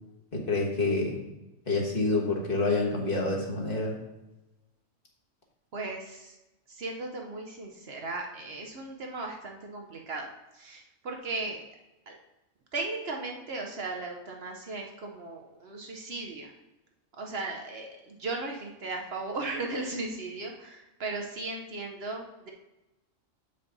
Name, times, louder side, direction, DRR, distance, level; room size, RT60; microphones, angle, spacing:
voice 1, 0.3-1.2 1.7-4.0, left 3 dB, 45° left, -2 dB, 1.6 m, -27 dB
voice 2, 5.7-6.4 6.7-10.3 10.5-11.6 12.1-12.2 12.7-16.5 17.2-22.5, right 3 dB, 55° right, 1 dB, 0.9 m, -36 dB
7.2 x 5.2 x 4.0 m, 1.0 s
omnidirectional pair, 1.3 m